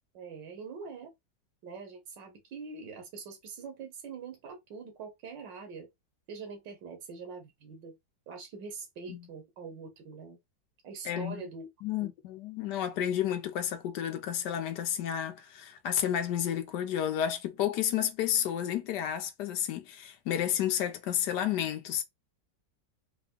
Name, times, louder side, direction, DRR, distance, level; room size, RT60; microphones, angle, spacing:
voice 1, 0.1-1.1 1.6-5.9 6.3-8.0 8.3-10.4 10.8-11.7 12.0-12.1, right 5 dB, 85° right, 1.8 m, -44 dB
voice 2, 11.0-11.4 11.8-22.0, left 10 dB, 75° left, 1.4 m, -31 dB
4.6 x 2.3 x 3.6 m
omnidirectional pair, 1.9 m